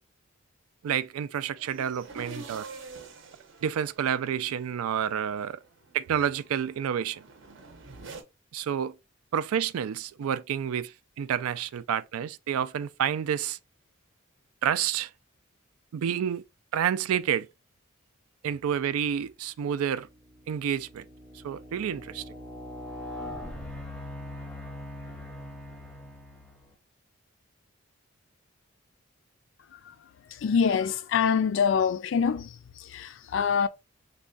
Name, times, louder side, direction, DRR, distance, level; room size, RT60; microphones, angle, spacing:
voice 1, 0.8-2.7 3.6-5.6 5.9-7.2 8.5-8.9 9.3-13.6 14.6-15.1 15.9-16.4 16.7-17.5 18.4-20.1 20.5-21.1 21.4-22.2, right 8 dB, 85° right, 0.3 m, -29 dB
sound 1, 1.6-8.2, right 3 dB, 60° right, 0.7 m, -47 dB
sound 2, 19.3-19.4 19.9-26.7, left 1 dB, 5° left, 0.6 m, -42 dB
voice 2, 30.3-33.7, left 6 dB, 60° left, 0.3 m, -26 dB
3.5 x 2.2 x 3.8 m
head